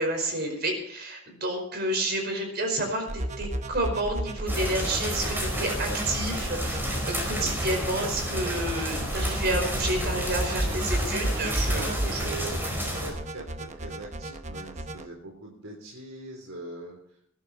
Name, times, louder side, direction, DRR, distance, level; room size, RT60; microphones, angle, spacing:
voice 1, 0.0-12.2, right 1 dB, 50° right, 4 dB, 4.8 m, -30 dB
sound 1, 3.1-15.1, right 1 dB, 35° right, 1.0 m, -33 dB
sound 2, 4.5-13.1, equal, 10° right, 4.7 m, -31 dB
voice 2, 11.7-12.6 13.0-13.6 13.8-17.0, right 2 dB, 85° right, -1 dB, 3.7 m, -41 dB
20.5 x 11.5 x 4.3 m, 0.64 s
head